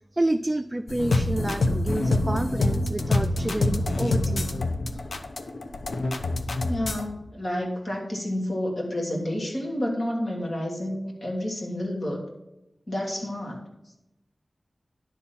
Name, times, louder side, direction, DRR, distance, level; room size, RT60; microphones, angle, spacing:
voice 1, 0.1-5.0, right 1 dB, 25° right, 8 dB, 0.4 m, -29 dB
sound 1, 0.9-7.1, left 2 dB, 85° left, 0.7 m, -26 dB
voice 2, 6.7-12.2 12.9-13.6, left 1 dB, 55° left, -2 dB, 3.1 m, -30 dB
10.5 x 4.2 x 7.3 m, 0.88 s
wide cardioid pair, 60°, 0 cm